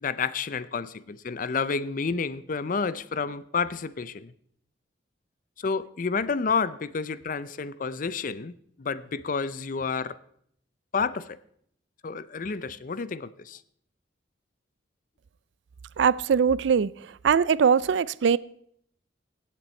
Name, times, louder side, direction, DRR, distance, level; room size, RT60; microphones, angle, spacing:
voice 1, 0.0-4.3 5.6-10.2 10.9-11.4 12.0-13.6, left 5 dB, 45° left, 0.5 m, -30 dB
voice 2, 16.0-16.9 17.2-18.4, right 6 dB, 70° right, 0.4 m, -21 dB
16.0 x 8.4 x 4.3 m
head